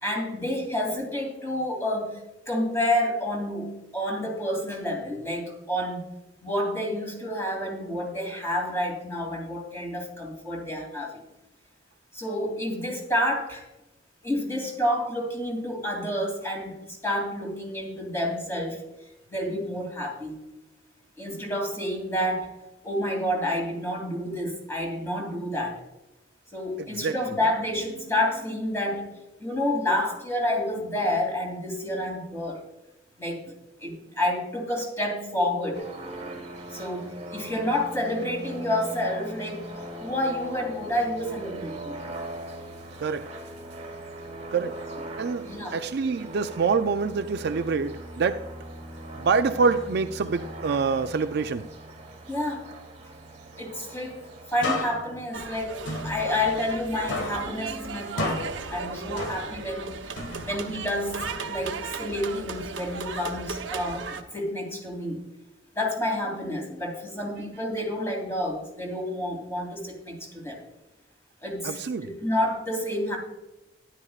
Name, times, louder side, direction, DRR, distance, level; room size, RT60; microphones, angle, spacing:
voice 1, 0.0-2.2 2.5-6.2 6.4-11.2 12.1-13.6 14.2-18.8 19.3-20.4 21.2-22.5 22.8-25.8 26.5-29.1 29.4-32.6 33.2-33.4 33.8-35.8 36.7-39.7 40.0-42.0 45.4-45.8 52.3-52.6 53.6-54.2 54.5-55.8 56.0-65.2 65.7-70.6 71.4-73.2, left 1 dB, 15° left, -1 dB, 2.7 m, -29 dB
sound 1, 35.7-54.8, right 1 dB, 35° right, 1.4 m, -40 dB
voice 2, 45.2-48.4 49.2-51.7 71.6-72.0, right 5 dB, 55° right, 10 dB, 0.4 m, -26 dB
sound 2, 54.6-56.8 57.1-59.8 60.2-61.8, left 2 dB, 80° left, 1.6 m, -34 dB
sound 3, 55.3-64.2, right 5 dB, 85° right, 0.9 m, -36 dB
13.0 x 11.0 x 2.4 m, 0.97 s
head